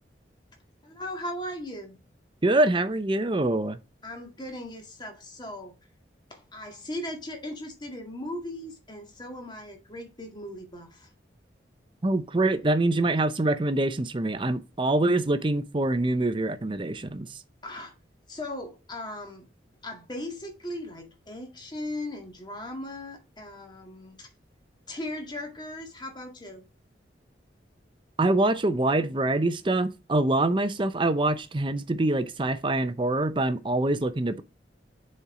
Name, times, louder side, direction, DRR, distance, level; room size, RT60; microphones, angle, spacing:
voice 1, 0.8-2.0 4.0-5.7 6.3-11.1 12.4-12.7 17.6-17.9 18.3-19.5 19.8-24.3 24.9-26.7, left 1 dB, 25° left, 1.8 m, -38 dB
voice 2, 2.4-3.8 12.0-17.3 28.2-34.4, right 2 dB, 30° right, 0.6 m, -25 dB
7.0 x 4.4 x 4.8 m
head